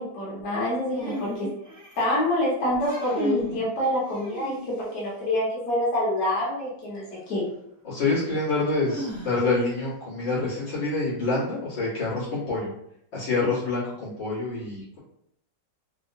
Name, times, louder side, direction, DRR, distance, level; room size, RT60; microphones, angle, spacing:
voice 1, 0.0-1.5 2.0-7.4, left 1 dB, 45° left, -6 dB, 1.2 m, -26 dB
sound 1, 0.9-2.2 2.7-3.6 4.1-5.0 6.9-7.0 8.9-9.7, equal, 30° right, 0.3 m, -34 dB
voice 2, 7.8-12.7 13.1-15.0, left 3 dB, 70° left, -9 dB, 2.3 m, -27 dB
4.6 x 2.1 x 2.6 m, 0.74 s
omnidirectional pair, 2.0 m